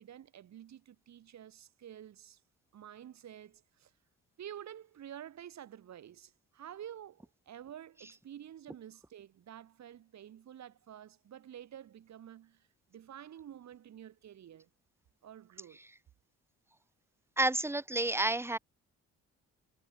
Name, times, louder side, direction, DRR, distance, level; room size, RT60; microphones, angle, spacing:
voice 1, 0.0-2.4 2.7-3.9 4.4-14.7 15.2-15.8, right 10 dB, 65° right, 3.7 m, -50 dB
voice 2, 17.4-18.6, right 2 dB, 10° right, 1.0 m, -30 dB
cardioid pair, 90°, 30 cm